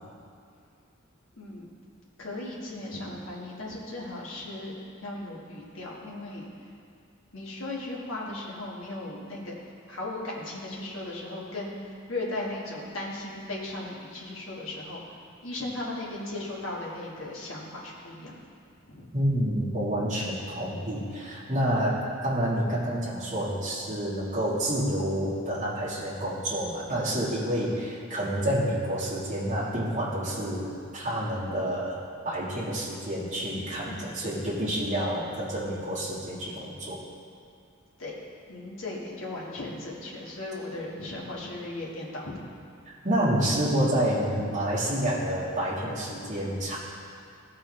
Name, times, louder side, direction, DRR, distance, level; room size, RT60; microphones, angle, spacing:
voice 1, 1.4-1.7 2.2-6.5 7.3-9.5 9.9-15.0 15.4-18.4 18.9-19.1 33.8-34.1 38.0-38.1 38.5-42.3, left 2 dB, 60° left, -4 dB, 1.5 m, -37 dB
voice 2, 19.1-37.0 43.0-46.8, right 1 dB, 30° right, -10 dB, 1.5 m, -28 dB
14.0 x 4.7 x 3.2 m, 2.4 s
head